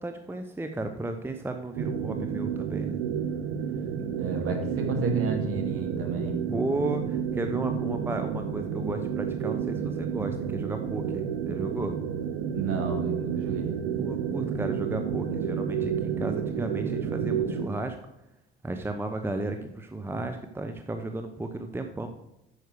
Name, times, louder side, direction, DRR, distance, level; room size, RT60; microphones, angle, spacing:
voice 1, 0.0-3.0 6.5-11.9 14.0-18.0 18.6-22.1, right 2 dB, 10° right, 6 dB, 0.8 m, -34 dB
sound 1, 1.7-17.7, right 7 dB, 65° right, 0.8 m, -30 dB
voice 2, 4.2-6.4 12.5-13.8, right 4 dB, 50° right, 2 dB, 2.2 m, -31 dB
9.1 x 6.5 x 4.9 m, 0.91 s
figure-of-eight pair, 55°, 29 cm